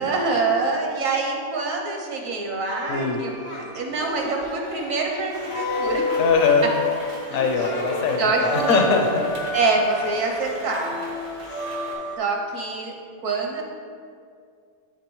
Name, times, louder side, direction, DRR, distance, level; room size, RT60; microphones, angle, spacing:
voice 1, 0.0-3.3 3.7-6.0 7.3-7.5 8.2-8.8 9.5-11.0 12.2-12.9 13.2-13.6, right 3 dB, 70° right, 1 dB, 1.2 m, -25 dB
sound 1, 2.7-12.2, left 1 dB, 40° left, 0.4 m, -31 dB
Singing, 2.9-3.6 3.9-5.3 5.6-6.9 7.3-8.0 8.3-8.5, left 1 dB, 85° left, 1.5 m, -38 dB
voice 2, 2.9-3.2 6.2-6.7 7.3-9.3, left 4 dB, 65° left, 3 dB, 1.0 m, -21 dB
Rain, 5.3-11.9, right 2 dB, 90° right, 1.6 m, -40 dB
11.0 x 3.7 x 3.1 m, 2.2 s
omnidirectional pair, 1.5 m